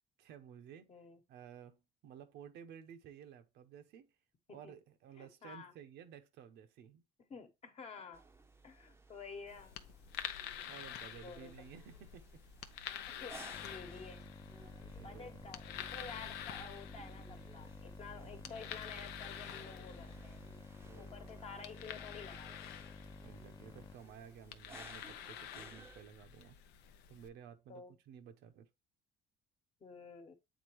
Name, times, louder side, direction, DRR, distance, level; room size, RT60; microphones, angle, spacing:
voice 1, 0.2-0.9 1.3-4.1 4.5-7.0 10.7-12.4 14.8-15.8 16.1-16.3 18.1-18.4 20.8-21.2 23.2-26.6 27.1-28.7, right 8 dB, 80° right, 0.9 m, -55 dB
voice 2, 0.9-1.2 4.5-4.7 5.2-5.7 7.3-8.2 8.6-9.8 11.0-11.5 13.1-14.3 15.0-20.4 20.9-22.7 27.7-27.9 29.8-30.3, left 5 dB, 40° left, 1.2 m, -51 dB
sound 1, 8.1-26.0, right 3 dB, 15° right, 0.7 m, -60 dB
sound 2, 9.5-27.3, left 10 dB, 85° left, 0.7 m, -49 dB
sound 3, 13.5-24.0, left 3 dB, 20° left, 0.6 m, -52 dB
8.2 x 4.0 x 3.0 m
cardioid pair, 110°, 17 cm